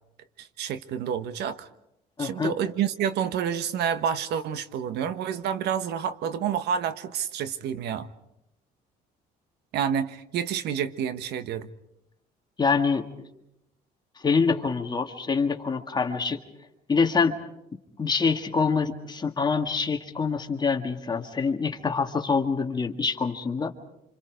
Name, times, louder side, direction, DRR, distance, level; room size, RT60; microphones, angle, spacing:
voice 1, 0.4-1.7 2.2-8.1 9.7-11.7, right 8 dB, 75° right, 12 dB, 1.3 m, -29 dB
voice 2, 2.2-2.6 12.6-13.1 14.2-16.4 16.9-17.4 18.0-23.7, left 5 dB, 25° left, 5 dB, 1.8 m, -25 dB
27.0 x 26.5 x 5.1 m, 0.82 s
cardioid pair, 110°, 17 cm